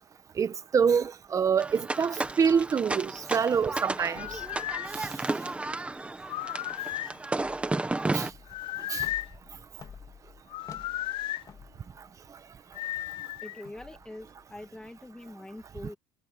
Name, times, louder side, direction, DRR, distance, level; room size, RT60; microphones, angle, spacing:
voice 1, 0.4-4.3 8.1-8.3 8.9-9.0, right 6 dB, 30° right, 1.4 m, -26 dB
sound 1, 1.6-8.3, right 2 dB, 10° right, 1.6 m, -33 dB
sound 2, 4.0-4.9 6.2-7.2 8.5-9.3 10.5-11.4 12.7-13.6, left 14 dB, 55° left, 0.4 m, -35 dB
sound 3, 4.1-15.3, left 7 dB, 35° left, 3.5 m, -52 dB
voice 2, 13.4-16.0, left 1 dB, 5° left, 2.0 m, -44 dB
supercardioid pair, 115°, 11 cm